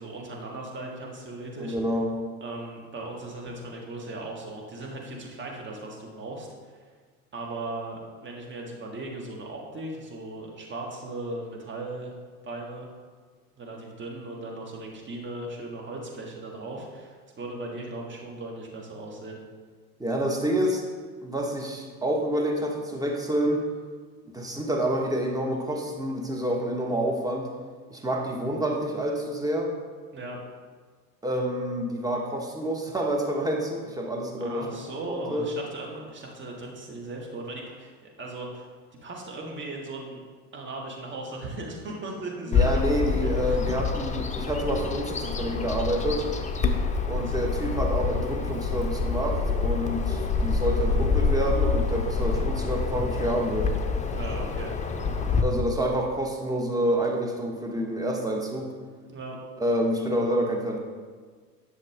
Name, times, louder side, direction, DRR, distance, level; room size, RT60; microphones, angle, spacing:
voice 1, 0.0-1.8 2.4-6.9 7.3-12.1 12.4-12.9 13.6-19.4 30.1-30.4 34.4-38.7 39.0-40.2 40.5-42.8 43.2-43.6 47.1-47.4 54.1-54.8 55.1-55.2 59.1-59.4, right 2 dB, 25° right, 0 dB, 2.0 m, -37 dB
voice 2, 1.5-2.1 20.0-20.8 21.2-23.6 24.3-27.5 27.9-29.7 31.2-35.0 35.3-35.5 42.5-46.2 47.0-53.7 55.4-58.7 59.6-60.8, right 1 dB, 10° right, 0 dB, 1.6 m, -28 dB
Bird vocalization bird call bird song, 42.5-55.4, left 4 dB, 15° left, 0.8 m, -27 dB
10.5 x 6.6 x 3.8 m, 1.6 s
figure-of-eight pair, 75°, 46 cm